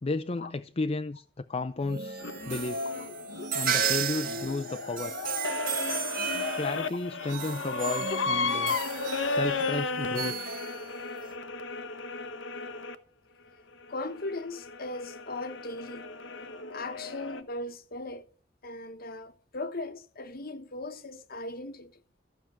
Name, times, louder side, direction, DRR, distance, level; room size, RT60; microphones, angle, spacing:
voice 1, 0.0-1.2 1.5-2.9 3.5-5.1 6.6-8.8 9.3-10.6, left 3 dB, 35° left, 0.5 m, -33 dB
sound 1, 1.8-11.3, right 6 dB, 50° right, 1.6 m, -34 dB
sound 2, 2.2-12.9 13.7-17.4, left 3 dB, 80° left, 1.2 m, -34 dB
voice 2, 13.9-16.1 16.7-18.3 18.6-21.9, left 2 dB, 50° left, 1.2 m, -38 dB
14.5 x 6.0 x 8.9 m
head